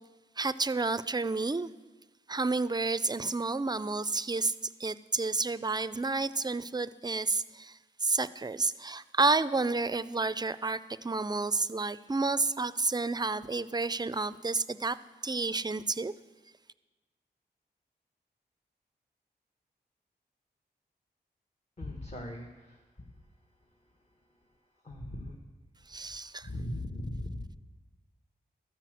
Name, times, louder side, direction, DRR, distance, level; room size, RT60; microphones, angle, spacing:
voice 1, 0.4-1.7 2.3-4.5 4.8-15.0 15.2-16.1 25.9-26.5, right 3 dB, 25° right, 15 dB, 0.4 m, -30 dB
voice 2, 21.8-22.8 24.8-25.4 26.4-27.6, left 1 dB, 40° left, 1 dB, 1.3 m, -39 dB
13.0 x 5.8 x 7.7 m, 1.2 s
wide cardioid pair, 70°, 18 cm